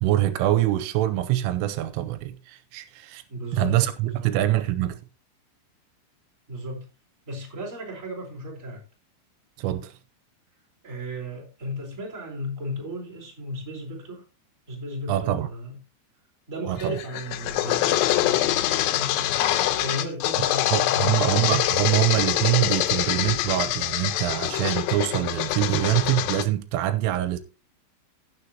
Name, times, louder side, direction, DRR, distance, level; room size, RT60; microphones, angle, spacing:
voice 1, 0.0-3.2 3.5-5.0 9.6-9.9 15.1-15.5 16.7-17.0 20.7-27.4, right 14 dB, 85° right, 3.2 m, -24 dB
voice 2, 3.3-4.5 6.5-6.8 7.2-8.8 10.8-14.2 14.7-15.8 16.5-21.3, equal, 15° right, 3.7 m, -35 dB
sound 1, 16.8-26.5, left 14 dB, 90° left, 3.4 m, -25 dB
17.0 x 6.6 x 2.8 m
omnidirectional pair, 5.7 m